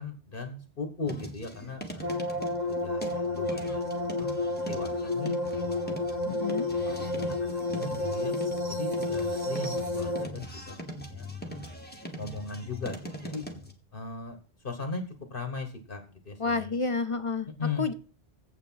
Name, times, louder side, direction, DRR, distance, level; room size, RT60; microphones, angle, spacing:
voice 1, 0.0-2.2 2.7-6.4 6.8-8.3 8.7-11.8 12.2-13.4 13.9-14.4 14.6-15.0 15.3-16.8 17.6-17.9, left 3 dB, 60° left, 6 dB, 1.5 m, -38 dB
sound 1, 1.0-13.7, equal, 10° left, 1.6 m, -41 dB
sound 2, 2.0-10.3, left 2 dB, 45° right, 1.5 m, -31 dB
voice 2, 6.2-6.7 16.4-17.5 17.8-17.9, left 4 dB, 40° left, 11 dB, 0.6 m, -29 dB
8.4 x 8.1 x 5.7 m, 0.41 s
omnidirectional pair, 1.1 m